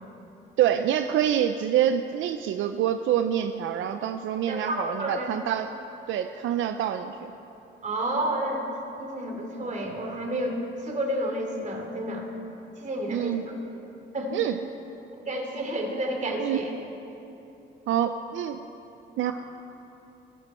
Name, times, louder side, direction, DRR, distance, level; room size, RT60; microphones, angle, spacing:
voice 1, 0.6-5.7 6.1-7.3 13.1-13.5 14.3-14.6 16.4-16.6 17.9-18.6 19.2-19.3, right 10 dB, 80° right, 8 dB, 0.6 m, -26 dB
voice 2, 4.5-5.3 7.8-8.6 9.0-12.3 12.8-13.4 14.1-14.4 15.2-16.7 19.2-19.3, right 1 dB, 40° right, 2 dB, 2.8 m, -30 dB
22.5 x 11.5 x 4.4 m, 3.0 s
cardioid pair, 90°, 20 cm